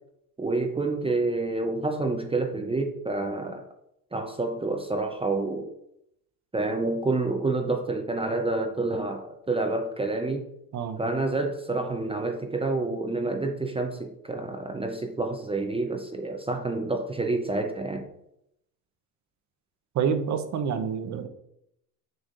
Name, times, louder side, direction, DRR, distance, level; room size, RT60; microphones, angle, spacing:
voice 1, 0.4-3.7 4.1-5.7 6.5-10.5 11.0-18.0, right 2 dB, 10° right, 4 dB, 0.7 m, -28 dB
voice 2, 19.9-21.3, right 7 dB, 40° right, 8 dB, 0.9 m, -27 dB
6.4 x 5.9 x 2.6 m, 0.78 s
hypercardioid pair, 80°, 46 cm